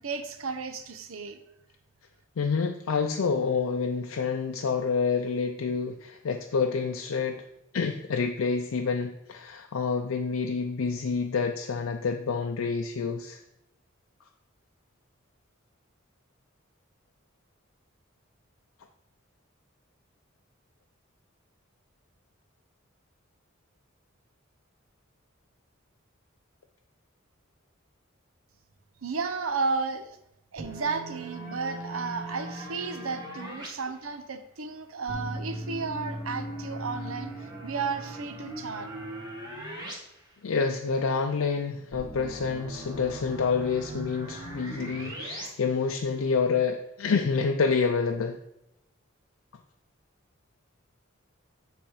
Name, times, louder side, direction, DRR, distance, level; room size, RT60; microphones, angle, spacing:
voice 1, 0.0-1.4 29.0-30.2 30.5-37.3 37.6-38.9, right 4 dB, 85° right, 9 dB, 0.7 m, -33 dB
voice 2, 2.4-7.4 7.7-13.4 40.4-48.4, left 5 dB, 85° left, 4 dB, 0.5 m, -28 dB
sound 1, 30.6-33.7 35.1-39.9 40.3-40.4 41.9-45.5, right 1 dB, 20° right, 1.4 m, -39 dB
8.8 x 3.5 x 4.8 m, 0.85 s
head